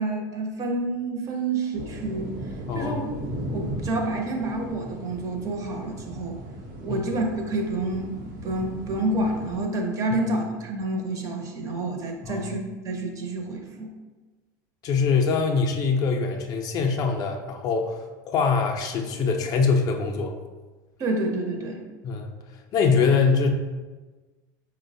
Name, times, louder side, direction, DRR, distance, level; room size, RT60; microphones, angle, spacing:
voice 1, 0.0-2.3 2.7-3.1 3.5-6.4 6.8-12.6 12.8-13.9 21.0-21.8, right 2 dB, 35° right, 2 dB, 0.5 m, -28 dB
sound 1, 1.7-9.6, right 1 dB, 75° right, 0.7 m, -37 dB
voice 2, 2.7-3.1 6.9-7.0 12.3-12.5 14.8-18.0 18.3-20.3 22.0-22.3 22.7-23.5, left 5 dB, 40° left, 3 dB, 0.3 m, -23 dB
4.4 x 2.0 x 2.6 m, 1.3 s
supercardioid pair, 130°, 10 cm